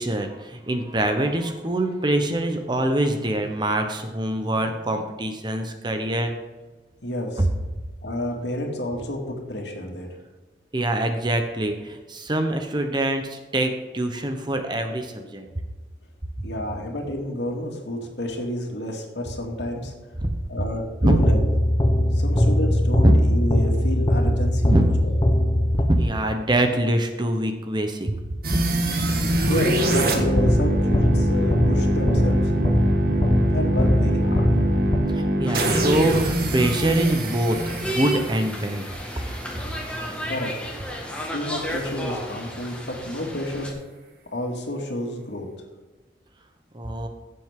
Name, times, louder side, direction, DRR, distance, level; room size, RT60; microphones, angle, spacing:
voice 1, 0.0-6.3 7.4-7.5 10.7-15.5 20.2-20.3 21.0-21.2 23.0-23.1 24.7-24.8 25.7-28.2 28.5-28.6 35.1-38.8 46.7-47.1, right 1 dB, 25° right, 5 dB, 0.9 m, -24 dB
voice 2, 7.0-7.5 8.0-10.1 16.4-19.9 20.5-21.4 22.1-24.7 25.0-25.1 29.5-32.5 33.5-34.5 40.3-40.7 41.3-43.7 44.3-45.5, left 1 dB, 80° left, 1 dB, 2.4 m, -30 dB
sound 1, 21.2-26.3 30.4-35.6, left 1 dB, 25° left, 0.9 m, -21 dB
sound 2, 28.4-39.4, right 1 dB, 55° right, 1.8 m, -24 dB
sound 3, 35.5-43.7, equal, 5° left, 1.7 m, -33 dB
15.5 x 7.7 x 3.8 m, 1.3 s
head